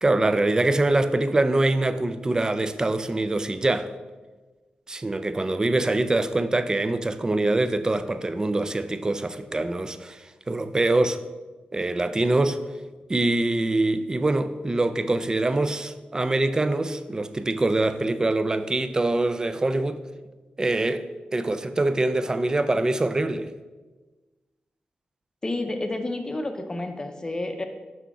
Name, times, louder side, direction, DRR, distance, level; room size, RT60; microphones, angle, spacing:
voice 1, 0.0-3.9 4.9-11.2 11.7-12.6 13.1-20.0 20.6-23.5, right 2 dB, 20° right, 0.4 m, -24 dB
voice 2, 25.4-27.6, left 2 dB, 20° left, 0.6 m, -30 dB
6.2 x 5.5 x 4.7 m
wide cardioid pair, 140°, 3 cm